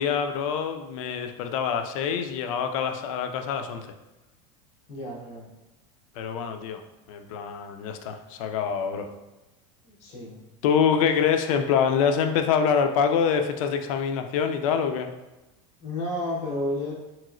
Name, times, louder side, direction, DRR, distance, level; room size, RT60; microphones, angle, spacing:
voice 1, 0.0-3.9 6.2-6.8 7.1-9.1 10.6-15.1, left 7 dB, 85° left, 7 dB, 0.4 m, -25 dB
voice 2, 4.9-5.5 9.8-10.4 15.8-16.9, left 1 dB, 50° left, -4 dB, 1.0 m, -31 dB
3.0 x 2.9 x 2.4 m, 1.0 s
supercardioid pair, 175°, 17 cm